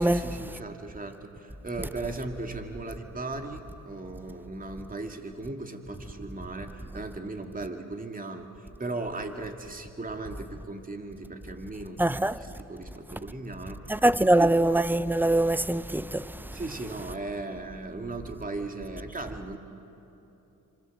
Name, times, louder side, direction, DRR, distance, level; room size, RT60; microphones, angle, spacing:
voice 1, 0.0-14.6 16.5-19.6, right 2 dB, 25° right, 2.5 m, -37 dB
voice 2, 12.0-12.4 13.9-16.5, right 1 dB, 5° right, 0.7 m, -23 dB
29.0 x 25.5 x 7.5 m
supercardioid pair, 70°, 35 cm